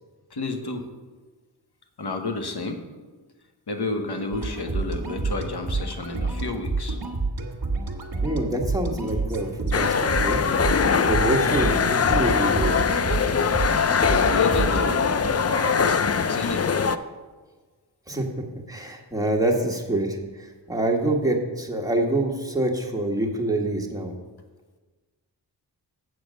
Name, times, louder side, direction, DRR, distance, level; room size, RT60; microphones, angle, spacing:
voice 1, 0.3-0.9 2.0-2.8 3.7-7.0 14.0-15.0 15.5-16.6, left 3 dB, 60° left, 5 dB, 1.3 m, -30 dB
sound 1, 4.3-15.5, right 3 dB, 55° right, 1.5 m, -29 dB
voice 2, 8.2-10.5 11.0-12.7 18.1-18.3 18.7-24.1, right 1 dB, 10° right, 0 dB, 1.6 m, -26 dB
sound 2, 9.7-17.0, left 6 dB, 35° left, 0.5 m, -22 dB
7.9 x 6.8 x 6.4 m, 1.3 s
cardioid pair, 50°, 44 cm